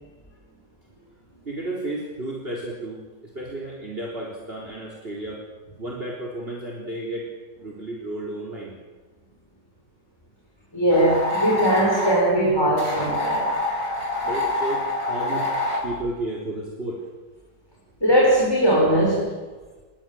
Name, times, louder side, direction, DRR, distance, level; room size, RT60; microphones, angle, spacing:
voice 1, 1.4-5.5 5.8-7.3 7.6-8.7 14.2-15.5 15.8-17.0, right 1 dB, 30° right, 0 dB, 4.1 m, -32 dB
voice 2, 10.7-13.5 18.0-19.4, right 1 dB, 15° left, -3 dB, 6.2 m, -20 dB
sound 1, 10.9-12.2 12.8-15.9, left 2 dB, 75° left, 5.9 m, -26 dB
29.5 x 22.0 x 7.8 m, 1.3 s
omnidirectional pair, 1.9 m